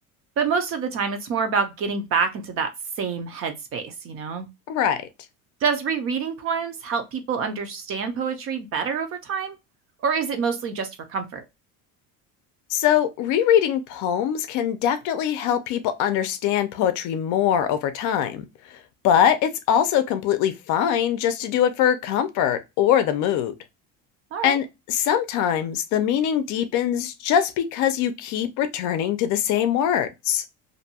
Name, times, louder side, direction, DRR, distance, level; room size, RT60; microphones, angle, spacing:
voice 1, 0.4-2.7 3.0-4.5 5.6-9.6 10.0-11.4 24.3-24.6, right 5 dB, 40° right, 0.5 m, -26 dB
voice 2, 4.7-5.0 12.7-18.5 19.0-23.5 24.4-30.4, left 9 dB, 55° left, 0.5 m, -22 dB
2.7 x 2.2 x 2.7 m
cardioid pair, 165°, 36 cm